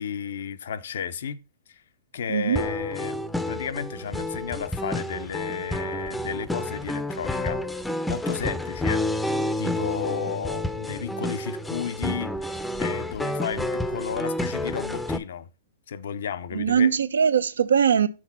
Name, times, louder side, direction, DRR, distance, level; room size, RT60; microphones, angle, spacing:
voice 1, 0.0-1.4 1.7-1.8 2.1-3.2 3.5-7.6 8.1-12.5 12.8-15.5 15.9-17.0, left 7 dB, 70° left, 0.7 m, -33 dB
voice 2, 2.3-2.6 16.5-18.1, right 7 dB, 85° right, 0.6 m, -21 dB
sound 1, 2.6-15.2, left 1 dB, 5° left, 0.5 m, -29 dB
6.2 x 4.1 x 5.7 m
hypercardioid pair, 130°, 0 cm